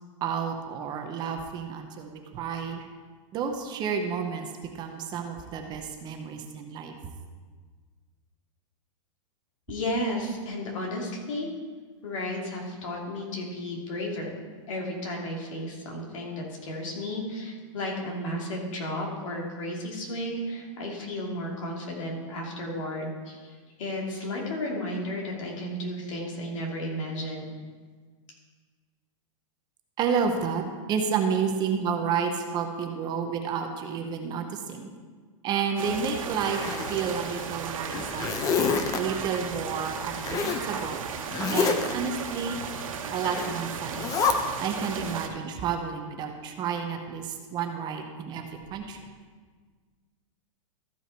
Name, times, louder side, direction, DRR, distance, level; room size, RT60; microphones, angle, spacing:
voice 1, 0.2-2.9 3.3-4.5 4.7-7.0 30.0-30.6 30.9-34.9 35.4-38.6 39.0-41.0 41.5-42.6 43.1-44.1 44.6-49.0, right 6 dB, 25° right, 4 dB, 0.8 m, -30 dB
voice 2, 9.7-11.5 12.0-14.3 14.7-23.5 23.8-27.4, left 1 dB, 70° left, -2 dB, 2.7 m, -33 dB
sound 1, 35.8-45.3, right 6 dB, 90° right, 1.3 m, -35 dB
Zipper (clothing), 36.4-37.4 37.9-39.0 40.2-40.7 41.3-41.9 43.2-43.5 43.9-44.3, left 6 dB, 20° left, 0.6 m, -27 dB
14.0 x 5.5 x 4.5 m, 1.5 s
supercardioid pair, 150°, 17 cm